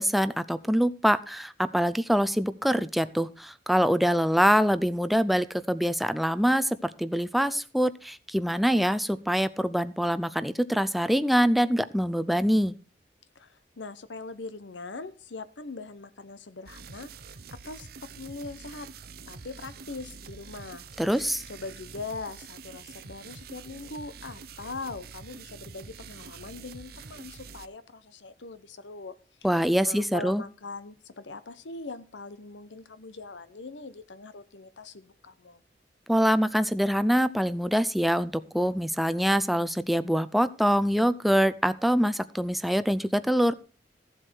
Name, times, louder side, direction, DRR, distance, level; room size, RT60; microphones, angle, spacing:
voice 1, 0.0-12.8 21.0-21.4 29.4-30.4 36.1-43.5, equal, ahead, 13 dB, 0.5 m, -24 dB
voice 2, 13.3-17.1 17.5-18.9 19.3-20.8 21.1-29.2 29.8-35.6, left 3 dB, 90° left, 14 dB, 0.9 m, -41 dB
sound 1, 16.7-27.7, right 5 dB, 55° right, 0.7 m, -46 dB
14.5 x 7.7 x 4.6 m, 0.36 s
head